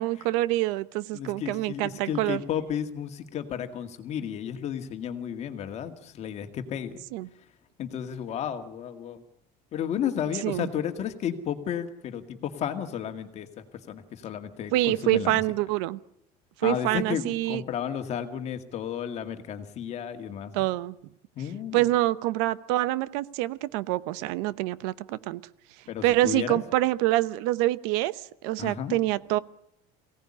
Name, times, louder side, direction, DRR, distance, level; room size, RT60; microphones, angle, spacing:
voice 1, 0.0-2.4 7.1-7.3 10.4-10.7 14.7-16.0 16.6-17.6 20.5-21.0 21.7-25.4 26.0-29.4, right 16 dB, 80° right, 16 dB, 1.0 m, -26 dB
voice 2, 1.1-7.0 7.8-9.2 9.7-15.4 16.6-20.5 21.4-21.9 25.9-26.6 28.6-29.0, left 9 dB, 35° left, 8 dB, 2.0 m, -33 dB
23.5 x 17.5 x 9.9 m, 0.75 s
cardioid pair, 175°, 19 cm